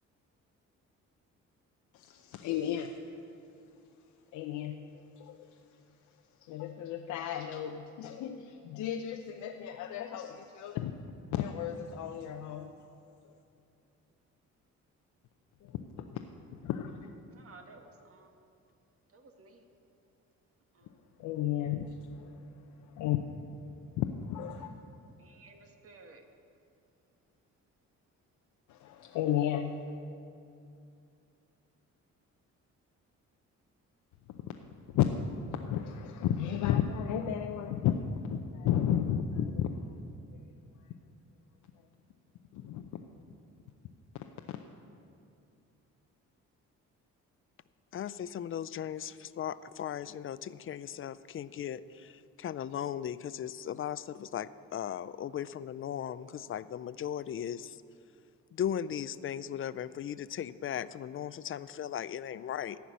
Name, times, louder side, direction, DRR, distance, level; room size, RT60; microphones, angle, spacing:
voice 1, 1.9-3.1 4.3-10.9 11.3-12.8 13.2-13.4 15.6-16.2 16.6-17.1 21.2-23.5 23.9-24.8 28.7-30.0 34.3-35.1 35.4-40.0 40.4-40.9 41.8-41.9 42.5-43.0 44.5-44.6, left 9 dB, 90° left, 4 dB, 0.7 m, -34 dB
voice 2, 17.3-18.4 19.1-19.7 20.7-21.0 25.2-26.2, right 3 dB, 50° right, 4 dB, 1.7 m, -55 dB
voice 3, 47.9-52.1 52.4-57.8 58.5-62.8, left 9 dB, 45° left, 16 dB, 0.5 m, -37 dB
14.5 x 5.9 x 9.5 m, 2.5 s
cardioid pair, 90°, 30 cm